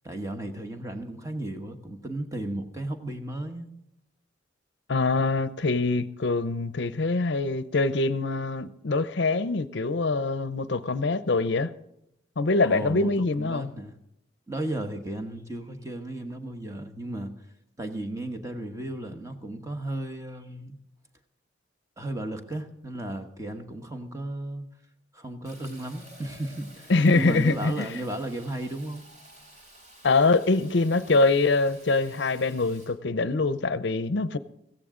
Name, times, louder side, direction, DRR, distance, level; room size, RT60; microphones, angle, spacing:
voice 1, 0.0-3.7 12.6-13.1 13.4-14.0 14.5-17.3 17.8-20.8 22.0-24.6 25.1-29.0, right 1 dB, 15° right, 1.1 m, -34 dB
voice 2, 4.9-11.7 12.4-13.7 26.9-28.0 30.0-34.4, left 3 dB, 60° left, 0.6 m, -24 dB
Fill (with liquid), 25.4-32.9, right 1 dB, 35° right, 3.8 m, -51 dB
16.5 x 15.0 x 3.8 m
head